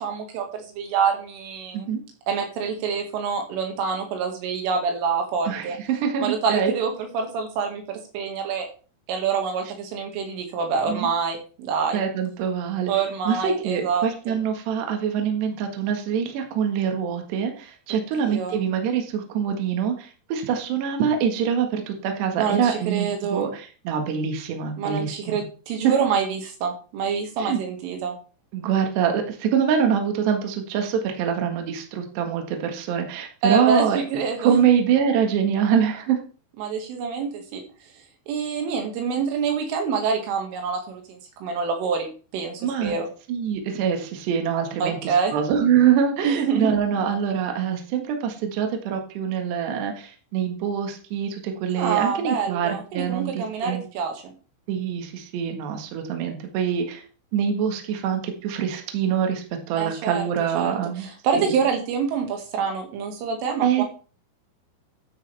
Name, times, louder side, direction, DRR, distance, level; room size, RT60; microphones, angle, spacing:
voice 1, 0.0-1.9 2.3-5.8 6.2-8.7 9.1-12.0 12.9-14.1 18.2-18.7 22.4-23.5 24.8-28.1 33.4-34.6 36.6-37.6 38.3-43.1 44.8-45.3 46.2-46.7 51.8-54.3 59.8-60.2 60.5-63.8, right 6 dB, 80° right, 3 dB, 4.5 m, -26 dB
voice 2, 5.5-6.7 10.9-11.1 11.9-12.9 13.3-25.4 25.8-25.9 27.4-27.6 28.5-34.0 34.4-36.2 42.6-42.9 43.3-53.8 54.7-57.0 57.3-61.1 61.3-61.5 63.6-63.8, right 8 dB, 65° right, 4 dB, 3.6 m, -24 dB
13.0 x 9.7 x 3.5 m, 0.38 s
omnidirectional pair, 5.6 m